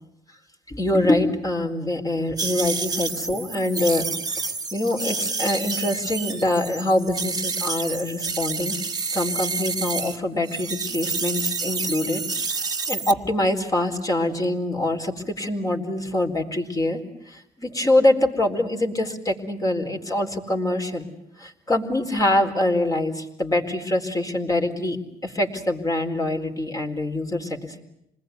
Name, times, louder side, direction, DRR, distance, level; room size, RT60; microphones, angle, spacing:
voice 1, 0.7-4.1 4.4-8.8 9.1-12.2 12.5-21.1 21.4-25.0 25.2-27.8, left 1 dB, 20° left, 3 dB, 4.1 m, -24 dB
sound 1, 2.4-10.2 10.5-13.1, right 4 dB, 25° right, 1.8 m, -29 dB
28.0 x 20.5 x 9.3 m, 0.81 s
cardioid pair, 110°, 17 cm